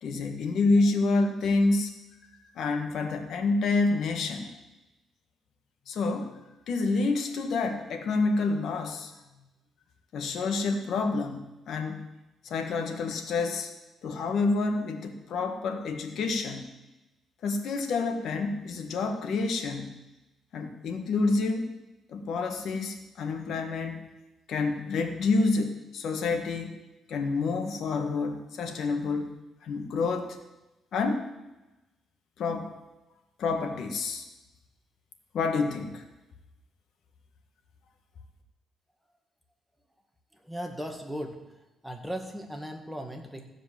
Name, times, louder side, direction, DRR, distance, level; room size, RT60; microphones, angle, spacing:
voice 1, 0.0-1.9 2.5-4.5 5.9-6.4 6.7-9.1 10.1-12.1 12.4-13.7 14.0-16.7 17.4-19.9 20.5-21.7 22.1-24.1 24.5-26.8 27.1-29.3 29.6-30.4 30.9-31.3 32.4-32.7 33.4-34.2 35.3-36.1, left 3 dB, 70° left, 5 dB, 1.6 m, -28 dB
voice 2, 40.3-41.4 41.8-43.4, equal, ahead, 3 dB, 1.8 m, -37 dB
15.0 x 5.1 x 7.4 m, 1.0 s
cardioid pair, 90°, 0 cm